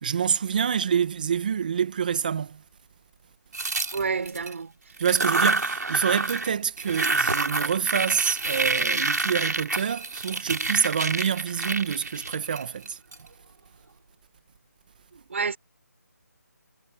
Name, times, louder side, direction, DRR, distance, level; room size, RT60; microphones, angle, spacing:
voice 1, 0.0-2.6 3.8-3.9 5.0-13.0, right 7 dB, 30° right, 1.7 m, -27 dB
sound 1, 3.5-4.5 5.0-6.5 6.8-13.2, right 3 dB, 90° right, 3.6 m, -27 dB
voice 2, 3.9-4.7 15.1-15.6, right 5 dB, 50° right, 4.1 m, -29 dB
figure-of-eight pair, 170°, 9 cm